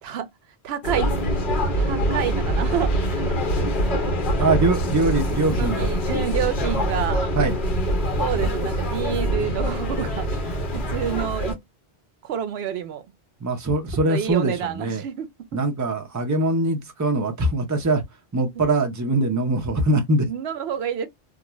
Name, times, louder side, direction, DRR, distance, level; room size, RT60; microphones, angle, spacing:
voice 1, 0.6-1.1 1.7-3.3 5.5-7.3 8.2-11.6 12.2-13.0 14.1-15.6 18.5-18.6 20.3-21.1, right 9 dB, 75° right, 0.8 m, -28 dB
sound 1, 0.8-11.5, equal, 55° left, 0.9 m, -24 dB
voice 2, 4.4-5.9 7.4-7.5 13.4-15.0 15.5-18.0 18.3-20.3, right 2 dB, 20° right, 0.5 m, -22 dB
2.5 x 2.2 x 2.9 m
omnidirectional pair, 1.1 m